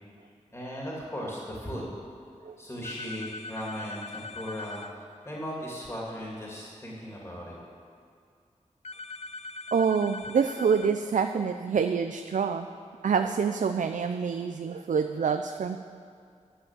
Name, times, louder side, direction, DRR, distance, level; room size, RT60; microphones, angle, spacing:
voice 1, 0.5-1.9 2.6-7.6, equal, 20° left, -5 dB, 2.5 m, -37 dB
sound 1, 2.8-4.9 8.8-10.9, left 3 dB, 55° left, 0.5 m, -41 dB
voice 2, 9.7-12.7 13.0-15.8, right 6 dB, 80° right, 7 dB, 0.4 m, -26 dB
10.0 x 7.8 x 7.4 m, 2.3 s
wide cardioid pair, 90°, 13 cm